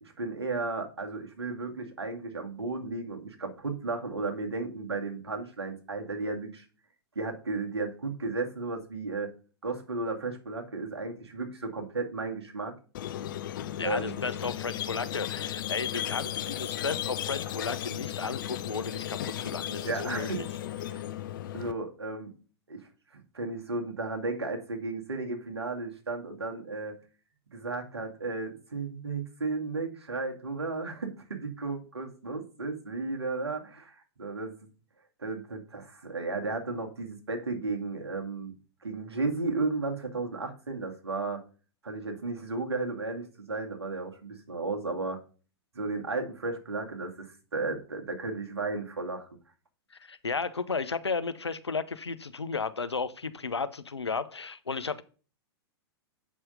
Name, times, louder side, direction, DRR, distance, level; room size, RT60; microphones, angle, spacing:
voice 1, 0.0-6.6 7.2-9.3 9.6-12.7 13.8-14.1 19.8-20.4 20.8-21.0 21.5-22.3 22.7-27.0 27.5-34.5 35.2-38.5 38.8-41.4 41.8-45.2 45.7-49.3, right 3 dB, 75° right, 2.2 m, -34 dB
Squeak, 12.9-21.7, left 12 dB, 50° left, 0.7 m, -35 dB
voice 2, 13.8-20.4 49.9-55.0, left 4 dB, 80° left, 0.8 m, -34 dB
8.4 x 5.6 x 5.2 m
figure-of-eight pair, 105°, 14 cm